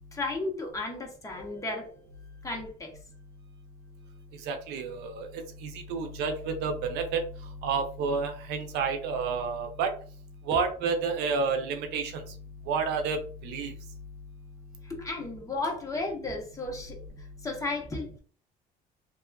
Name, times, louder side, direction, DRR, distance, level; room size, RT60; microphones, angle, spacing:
voice 1, 0.1-2.0 2.4-2.9 14.8-18.2, left 2 dB, 20° left, 0 dB, 1.0 m, -34 dB
voice 2, 4.5-5.3 5.6-7.2 7.6-9.9 10.5-12.2 12.7-13.2 13.4-13.7, right 5 dB, 90° right, 5 dB, 0.5 m, -30 dB
2.9 x 2.4 x 2.2 m, 0.42 s
cardioid pair, 110°, 17 cm